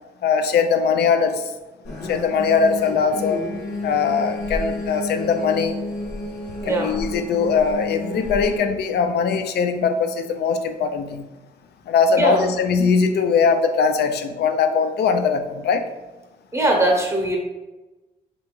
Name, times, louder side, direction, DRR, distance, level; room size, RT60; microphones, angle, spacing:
voice 1, 0.2-1.5 2.1-3.5 3.8-5.7 6.7-11.2 11.9-15.8, left 5 dB, 65° left, 8 dB, 0.4 m, -20 dB
sound 1, 1.8-8.6, left 2 dB, 85° left, 0.8 m, -31 dB
voice 2, 6.6-6.9 12.1-12.5 16.5-17.4, right 1 dB, 15° right, 1 dB, 0.9 m, -20 dB
3.4 x 2.4 x 3.0 m, 1.1 s
supercardioid pair, 50°, 18 cm